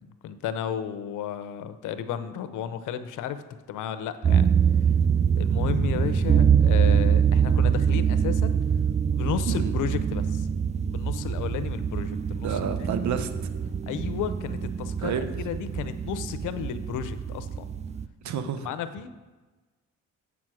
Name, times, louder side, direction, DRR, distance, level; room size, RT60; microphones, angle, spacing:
voice 1, 0.0-3.4 3.7-4.6 5.3-8.6 9.1-10.5 10.9-12.6 12.9-13.0 13.9-17.7 18.6-19.1, left 9 dB, 85° left, 12 dB, 0.7 m, -33 dB
sound 1, 4.2-18.1, right 7 dB, 25° right, 0.4 m, -24 dB
voice 2, 12.4-13.3 15.0-15.2 18.2-18.7, right 7 dB, 70° right, 9 dB, 1.0 m, -29 dB
8.4 x 6.1 x 6.2 m, 1.2 s
cardioid pair, 90°, 30 cm